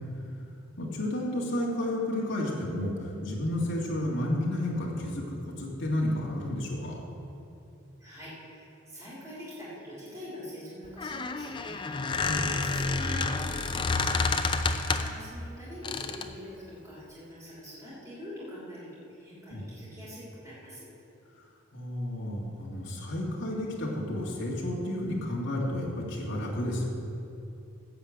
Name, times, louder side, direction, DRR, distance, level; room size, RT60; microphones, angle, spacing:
voice 1, 0.8-7.0 12.2-12.6 19.5-19.6 21.4-21.5 21.7-26.8, left 1 dB, 65° left, -5 dB, 1.9 m, -31 dB
voice 2, 8.0-11.7 12.6-14.0 14.3-20.9, equal, 15° right, -10 dB, 3.3 m, -44 dB
Squeak, 10.8-15.2 15.8-16.4, left 3 dB, 20° left, 0.4 m, -29 dB
15.0 x 5.1 x 8.3 m, 2.6 s
head